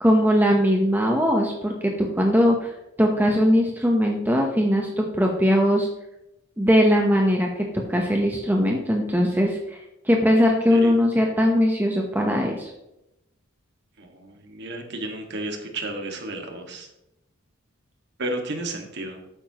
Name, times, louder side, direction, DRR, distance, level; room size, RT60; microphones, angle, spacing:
voice 1, 0.0-5.9 6.6-9.8 10.0-12.7, equal, 10° right, 1 dB, 0.9 m, -20 dB
voice 2, 14.0-16.9 18.2-19.2, right 2 dB, 60° right, 3 dB, 1.9 m, -32 dB
12.5 x 9.0 x 3.0 m, 0.88 s
head